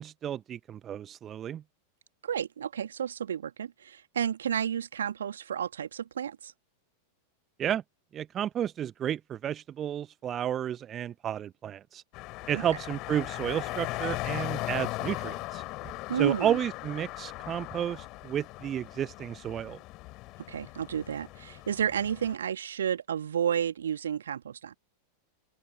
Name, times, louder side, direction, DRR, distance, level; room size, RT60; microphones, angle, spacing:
voice 1, 0.0-1.6 7.6-7.8 8.1-12.0 12.5-15.6 16.1-19.8, right 10 dB, 25° right, 0.8 m, -32 dB
voice 2, 2.2-6.5 12.5-12.6 16.1-16.6 20.5-24.7, right 8 dB, 65° right, 2.0 m, -31 dB
sound 1, 12.1-22.3, left 20 dB, 40° left, 6.2 m, -38 dB
open air
figure-of-eight pair, 90°, 0 cm